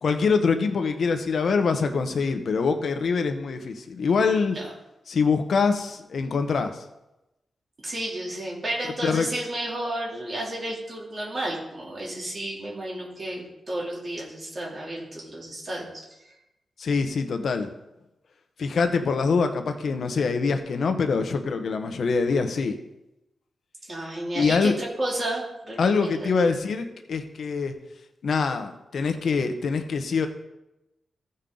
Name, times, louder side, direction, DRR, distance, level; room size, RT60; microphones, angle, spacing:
voice 1, 0.0-4.6 5.1-6.8 9.0-9.3 16.8-17.7 18.6-22.8 24.3-24.7 25.8-27.7 28.2-30.3, left 5 dB, 60° left, 7 dB, 0.9 m, -24 dB
voice 2, 7.8-16.3 23.9-26.5, right 1 dB, 35° right, -4 dB, 3.0 m, -32 dB
15.5 x 5.4 x 3.9 m, 0.93 s
wide cardioid pair, 135°, 0 cm